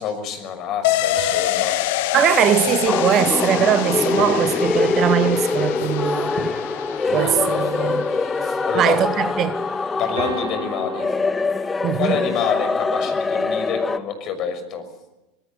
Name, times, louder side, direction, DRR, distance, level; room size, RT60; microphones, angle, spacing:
voice 1, 0.0-1.7 4.7-4.9 7.1-7.9 8.6-9.0 10.0-11.1 11.9-14.8, left 7 dB, 45° left, 6.2 m, -27 dB
sound 1, 0.8-10.2 10.6-10.7, left 15 dB, 60° left, 1.2 m, -27 dB
sound 2, 1.2-3.6 4.2-5.6 7.2-8.6 10.2-12.5, right 5 dB, 70° right, 3.2 m, -35 dB
voice 2, 2.1-6.6 7.1-8.0 8.7-9.7 11.8-12.2, right 10 dB, 40° right, 1.3 m, -21 dB
sound 3, 2.9-14.0, left 4 dB, 15° left, 1.6 m, -24 dB
26.0 x 19.0 x 8.2 m
figure-of-eight pair, 85°, 0 cm